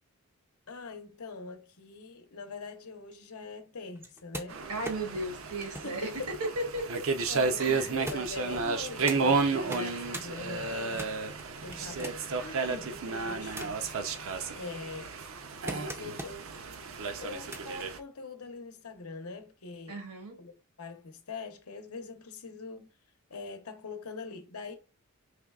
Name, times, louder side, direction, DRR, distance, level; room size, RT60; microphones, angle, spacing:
voice 1, 0.7-4.6 5.8-6.3 7.3-13.8 14.5-15.2 15.7-16.6 17.0-20.1 20.4-22.9 23.3-24.8, left 4 dB, 80° left, 0.8 m, -43 dB
sound 1, 3.9-7.3 8.0-9.2 9.6-10.3 10.7-12.4 13.0-13.9 14.5-16.5 17.2-17.9 18.9-19.0, right 1 dB, 10° right, 0.4 m, -43 dB
sound 2, 4.5-18.0, right 4 dB, 60° right, 0.6 m, -32 dB
voice 2, 4.7-6.8 7.6-7.9 19.9-20.4, right 1 dB, 80° right, 1.5 m, -35 dB
4.9 x 3.2 x 2.3 m
head